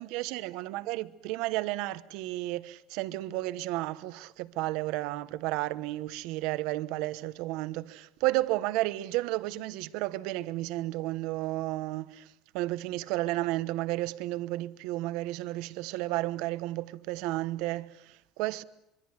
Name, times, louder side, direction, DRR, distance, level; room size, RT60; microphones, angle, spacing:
voice 1, 0.0-12.3 12.5-18.6, right 17 dB, 65° right, 1.0 m, -32 dB
25.5 x 24.0 x 8.0 m
cardioid pair, 175°, 0 cm